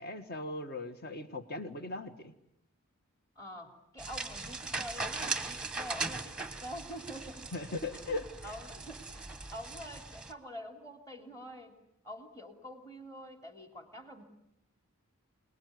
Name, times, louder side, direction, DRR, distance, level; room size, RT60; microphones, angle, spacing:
voice 1, 0.0-2.3 7.5-8.5, left 2 dB, 45° left, 8 dB, 1.7 m, -39 dB
voice 2, 3.3-11.8 12.0-14.2, equal, 15° left, 4 dB, 3.2 m, -46 dB
sound 1, 4.0-10.3, right 3 dB, 5° right, 1.3 m, -39 dB
27.5 x 20.5 x 9.6 m, 0.80 s
head